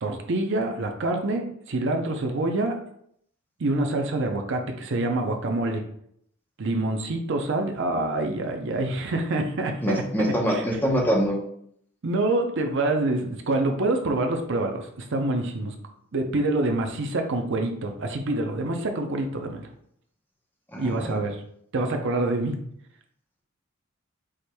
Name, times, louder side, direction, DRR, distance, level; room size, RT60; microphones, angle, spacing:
voice 1, 0.0-2.8 3.6-5.8 6.6-10.6 12.0-15.7 16.1-19.6 20.8-21.4 21.7-22.6, right 2 dB, 60° right, 4 dB, 0.6 m, -26 dB
voice 2, 9.8-11.4 20.7-21.2, equal, 10° left, -1 dB, 0.8 m, -24 dB
4.9 x 4.4 x 2.2 m, 0.68 s
head